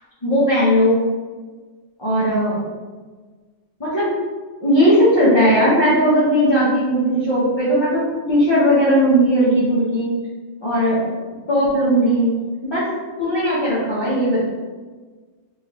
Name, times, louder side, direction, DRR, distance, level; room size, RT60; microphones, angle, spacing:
voice 1, 0.2-1.0 2.0-2.6 3.8-4.1 4.6-10.1 10.6-11.0 11.5-12.3 12.6-12.8 13.2-14.5, equal, 25° left, -10 dB, 0.8 m, -17 dB
3.4 x 2.8 x 2.9 m, 1.4 s
omnidirectional pair, 1.2 m